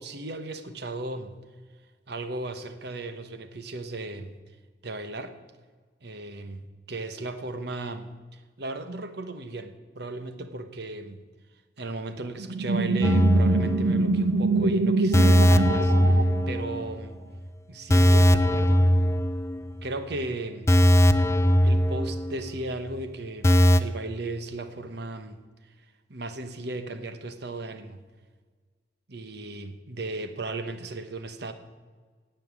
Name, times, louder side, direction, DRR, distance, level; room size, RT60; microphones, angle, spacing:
voice 1, 0.0-1.4 2.1-4.4 4.8-5.3 6.0-11.2 11.8-17.2 17.7-18.8 19.8-20.7 21.6-23.5 23.8-25.4 26.1-28.0 29.1-31.5, right 2 dB, 60° right, 9 dB, 1.1 m, -36 dB
sound 1, 12.4-16.9, right 3 dB, 80° right, 0.6 m, -25 dB
sound 2, 13.0-14.3 14.6-14.7 15.1-17.1 17.3-17.5 17.9-19.8 20.1-20.2 20.7-22.6 22.9-23.0 23.4-23.8, equal, 15° left, 0.4 m, -20 dB
17.5 x 5.8 x 8.3 m, 1.5 s
head